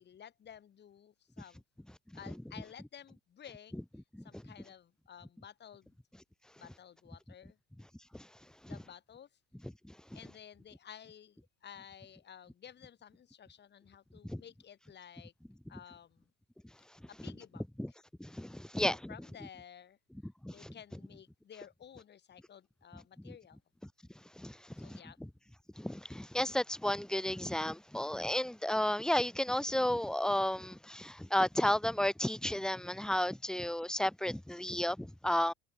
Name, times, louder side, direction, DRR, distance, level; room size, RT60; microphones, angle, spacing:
voice 1, 0.0-1.6 2.1-3.8 4.2-5.9 6.6-7.6 8.7-9.3 10.1-15.3 15.7-16.3 17.1-17.6 18.8-20.0 20.5-23.6 24.8-25.2, left 9 dB, 35° left, 5.5 m, -53 dB
voice 2, 9.8-10.2 14.2-14.4 17.2-17.3 17.8-17.9 18.2-19.1 20.2-20.7 23.2-23.3 24.4-25.3 25.8-35.5, left 1 dB, ahead, 1.2 m, -33 dB
supercardioid pair, 120°, 32 cm